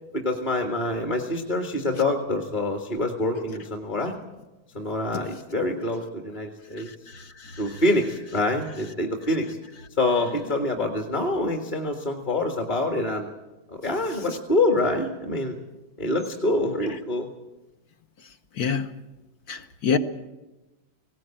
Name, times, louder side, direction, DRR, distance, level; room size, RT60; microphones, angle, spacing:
voice 1, 0.1-4.1 4.7-6.9 7.6-9.6 10.0-13.3 13.7-15.6 16.0-17.3, left 2 dB, 25° left, 2 dB, 1.7 m, -26 dB
voice 2, 19.5-20.0, left 6 dB, 55° left, 8 dB, 1.3 m, -24 dB
19.0 x 17.5 x 8.8 m, 1.1 s
omnidirectional pair, 2.2 m